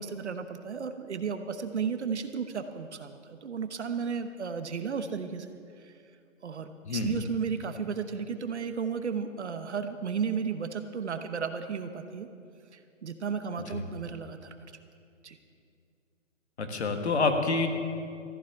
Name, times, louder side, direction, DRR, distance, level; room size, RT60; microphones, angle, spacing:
voice 1, 0.0-5.5 5.8-5.9 6.4-12.3 12.7-14.6 15.2-15.4, right 6 dB, 60° right, 8 dB, 1.0 m, -34 dB
voice 2, 6.8-7.2 13.7-13.8 16.6-17.7, left 3 dB, 60° left, 5 dB, 1.7 m, -27 dB
14.5 x 7.3 x 9.5 m, 2.4 s
hypercardioid pair, 170°, 38 cm